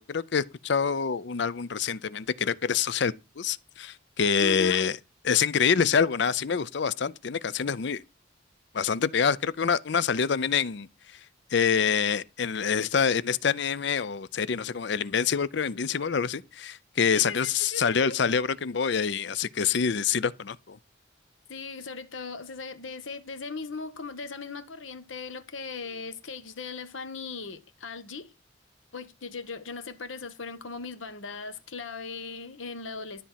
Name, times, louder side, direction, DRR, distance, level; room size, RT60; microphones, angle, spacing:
voice 1, 0.0-5.0 5.2-8.0 8.7-10.9 11.5-20.8, left 6 dB, 60° left, 0.5 m, -26 dB
voice 2, 4.4-4.8 17.1-18.2 21.5-28.3 28.9-33.2, left 4 dB, 80° left, 1.2 m, -38 dB
12.5 x 4.2 x 7.4 m
head